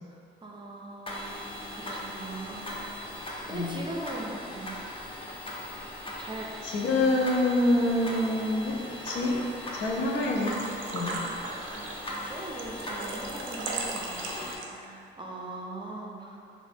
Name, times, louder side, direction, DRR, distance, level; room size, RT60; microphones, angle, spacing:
voice 1, 0.4-2.7 3.5-4.8 6.2-6.5 11.7-14.3 14.7-16.4, right 2 dB, 25° right, -2 dB, 0.5 m, -40 dB
sound 1, 1.1-14.6, left 1 dB, 25° left, 0.6 m, -39 dB
voice 2, 6.6-8.8 9.0-9.4 9.7-11.3, left 1 dB, 70° left, -1 dB, 0.5 m, -26 dB
Engine / Trickle dribble / Fill (with liquid), 10.1-15.0, right 4 dB, 80° right, 0.4 m, -38 dB
3.4 x 2.0 x 3.3 m, 2.5 s
cardioid pair, 90°, 20 cm